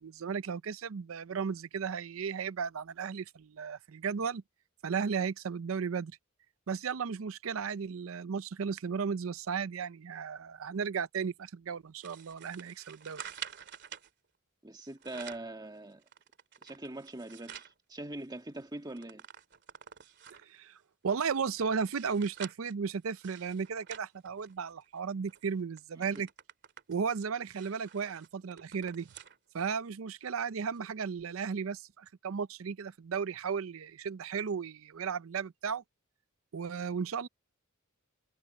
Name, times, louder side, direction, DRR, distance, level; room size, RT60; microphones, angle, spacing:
voice 1, 0.0-4.4 4.8-6.1 6.7-13.2 20.4-20.8 21.0-26.3 26.9-29.1 29.5-35.8 36.5-37.3, right 6 dB, 70° right, 0.5 m, -35 dB
sound 1, 12.0-14.1 14.8-15.5 16.0-17.7 18.2-18.3 18.5-20.6 21.1-24.9 25.3-25.5 25.8-29.4 29.8-29.9 30.7-30.8, right 9 dB, 55° right, 2.6 m, -49 dB
voice 2, 14.6-16.0 16.6-19.2 26.0-26.2, right 2 dB, 20° right, 1.7 m, -43 dB
head